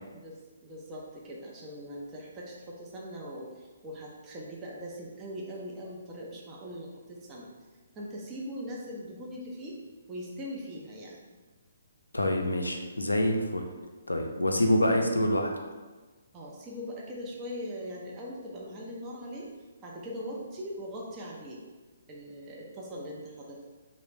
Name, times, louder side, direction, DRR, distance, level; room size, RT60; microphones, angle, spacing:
voice 1, 0.1-7.5 8.0-9.8 10.1-11.2 14.9-15.1 16.3-19.5 19.8-21.6 22.1-23.7, equal, 20° right, -4 dB, 0.5 m, -41 dB
voice 2, 12.1-13.7 14.1-15.5, left 1 dB, 80° left, 3 dB, 0.4 m, -26 dB
3.1 x 2.0 x 3.1 m, 1.3 s
figure-of-eight pair, 130°, 0 cm